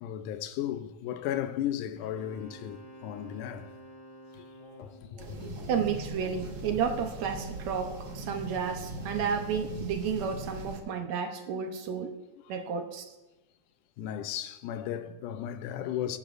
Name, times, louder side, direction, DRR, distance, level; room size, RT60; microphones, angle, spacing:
voice 1, 0.0-3.7 4.8-5.5 11.5-11.7 14.0-16.2, left 11 dB, 85° left, 2.2 m, -35 dB
Wind instrument woodwind instrument, 2.0-5.1, equal, 50° left, 4.9 m, -50 dB
sound 1, 4.5-9.7, left 1 dB, 25° left, 5.6 m, -53 dB
sound 2, 5.2-10.8, right 1 dB, 50° right, 1.1 m, -40 dB
voice 2, 5.7-12.1 12.5-13.1, right 7 dB, 70° right, 2.0 m, -32 dB
23.0 x 10.0 x 2.6 m
omnidirectional pair, 3.6 m